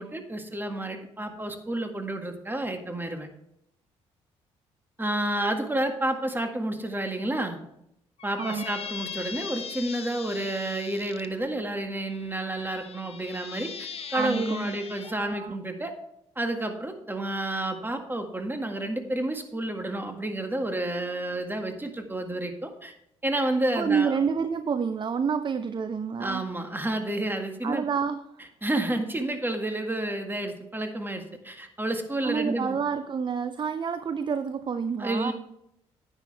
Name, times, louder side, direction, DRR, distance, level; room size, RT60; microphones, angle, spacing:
voice 1, 0.0-3.3 5.0-7.6 8.2-16.0 16.4-22.9 23.2-24.2 26.2-27.9 28.6-32.8 35.0-35.3, right 1 dB, 15° right, 5 dB, 1.8 m, -30 dB
Squeak, 8.2-11.3 12.1-15.2, left 7 dB, 45° left, 0.9 m, -40 dB
voice 2, 14.1-14.8 15.0-15.6 23.8-26.5 27.6-28.5 32.2-35.3, right 6 dB, 35° right, 11 dB, 0.6 m, -28 dB
10.0 x 9.1 x 3.3 m, 0.79 s
hypercardioid pair, 50°, 14 cm